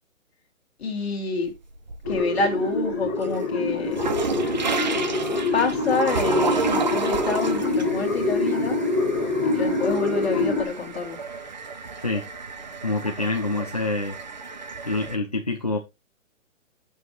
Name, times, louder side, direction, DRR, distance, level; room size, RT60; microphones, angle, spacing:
voice 1, 0.8-1.5 2.1-4.0 5.5-8.8 9.4-11.2, left 3 dB, 50° left, 2.3 m, -27 dB
sound 1, 1.4-2.4 2.8-15.2, right 4 dB, 35° right, 0.7 m, -31 dB
sound 2, 2.0-10.6, left 3 dB, 10° left, 0.9 m, -25 dB
voice 2, 12.8-14.2 14.8-15.8, left 2 dB, 30° left, 0.4 m, -26 dB
9.1 x 6.4 x 3.0 m
hypercardioid pair, 175°, 41 cm